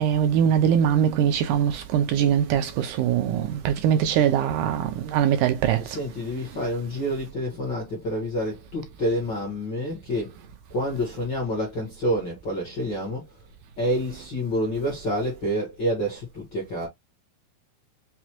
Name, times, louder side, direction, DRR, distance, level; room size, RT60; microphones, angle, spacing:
voice 1, 0.0-2.7 3.0-4.8 5.1-5.8, right 9 dB, 80° right, 1.9 m, -21 dB
voice 2, 5.7-10.3 10.7-13.4 13.8-16.9, equal, 55° left, 1.2 m, -28 dB
5.9 x 2.3 x 2.9 m
omnidirectional pair, 3.9 m